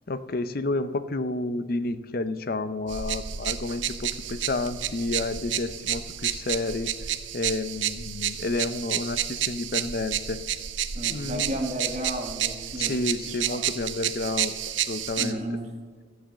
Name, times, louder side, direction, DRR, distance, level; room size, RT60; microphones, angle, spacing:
voice 1, 0.1-6.9 7.3-10.4 11.1-11.5 12.8-15.4, left 2 dB, 50° left, 12 dB, 0.6 m, -30 dB
sound 1, 2.9-15.3, right 11 dB, 75° right, 0.6 m, -30 dB
voice 2, 10.9-13.6 15.2-15.7, equal, 35° right, 0 dB, 1.2 m, -33 dB
13.5 x 7.5 x 7.4 m, 1.5 s
head